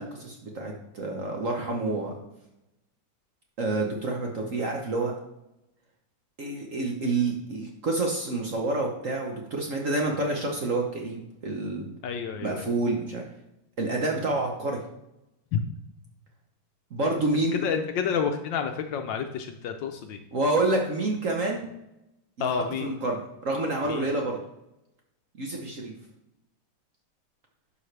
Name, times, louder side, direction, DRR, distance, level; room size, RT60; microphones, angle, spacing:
voice 1, 0.0-2.1 3.6-5.1 6.4-11.9 12.4-13.2 13.8-14.8 16.9-17.7 20.3-21.7 22.8-24.4 25.4-25.9, right 2 dB, 50° right, 0 dB, 1.0 m, -28 dB
voice 2, 12.0-12.7 15.5-15.6 17.5-20.2 22.4-22.9 23.9-24.1, left 7 dB, 70° left, 6 dB, 1.2 m, -29 dB
11.0 x 5.4 x 3.3 m, 0.87 s
omnidirectional pair, 2.3 m